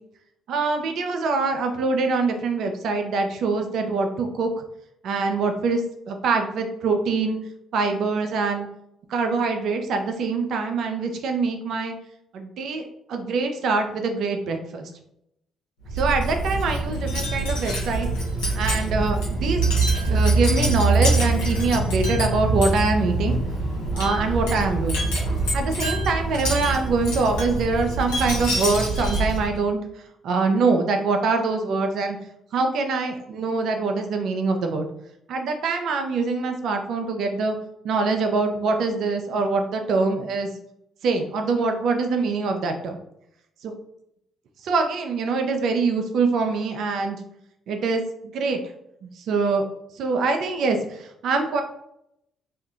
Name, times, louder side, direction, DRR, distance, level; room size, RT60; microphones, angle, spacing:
voice 1, 0.5-4.6 5.0-5.8 6.1-7.4 7.7-8.7 9.1-11.9 12.3-14.9 15.9-18.1 18.5-19.6 20.1-23.4 23.9-25.0 25.5-29.8 30.2-32.2 32.5-34.9 35.3-37.6 37.8-40.5 41.0-43.0 43.6-43.7 44.6-47.2 47.7-48.6 49.0-49.7 50.0-51.6, right 4 dB, 65° right, 5 dB, 0.4 m, -24 dB
Wind chime, 15.8-29.6, right 2 dB, 85° left, 0.8 m, -24 dB
2.7 x 2.4 x 2.3 m, 0.78 s
hypercardioid pair, 50°, 0 cm